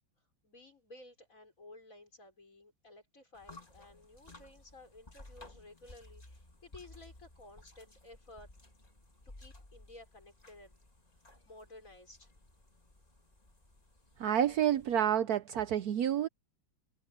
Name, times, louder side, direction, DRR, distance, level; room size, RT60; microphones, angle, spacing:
voice 1, 0.4-8.5 9.4-10.8 11.1-11.2 11.5-12.3, left 2 dB, 45° left, 5.7 m, -55 dB
sound 1, 3.3-15.0, left 2 dB, 20° left, 2.2 m, -57 dB
voice 2, 14.2-16.3, right 10 dB, 70° right, 1.1 m, -29 dB
omnidirectional pair, 1.9 m